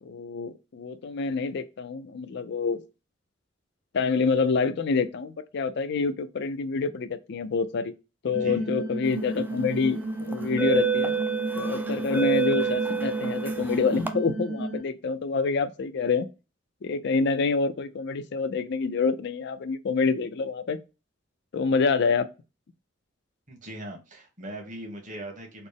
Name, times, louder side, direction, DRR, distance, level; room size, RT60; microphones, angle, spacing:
voice 1, 0.0-2.8 3.9-7.9 8.2-11.1 11.6-16.3 16.8-20.8 21.5-22.2, left 4 dB, 60° left, 0.4 m, -27 dB
voice 2, 8.3-8.6 23.5-25.7, right 1 dB, 40° right, 1.2 m, -40 dB
sound 1, 8.3-14.8, right 2 dB, 75° right, 1.5 m, -33 dB
sound 2, 9.3-9.5 10.3-14.1, right 7 dB, 10° right, 0.4 m, -28 dB
4.1 x 2.0 x 3.4 m
head